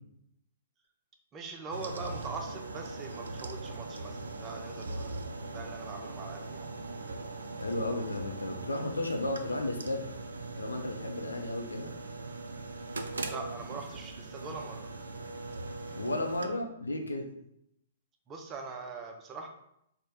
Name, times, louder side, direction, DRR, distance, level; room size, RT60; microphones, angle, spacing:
voice 1, 1.3-5.2 5.5-6.7 13.3-14.9 18.3-19.5, right 4 dB, 25° right, 2 dB, 0.5 m, -42 dB
sound 1, 1.7-16.5, right 3 dB, 80° right, 0.3 m, -40 dB
voice 2, 7.6-10.0 10.6-11.9 16.0-17.3, left 1 dB, 90° left, 2 dB, 0.5 m, -33 dB
2.8 x 2.1 x 3.5 m, 0.76 s
hypercardioid pair, 120°, 0 cm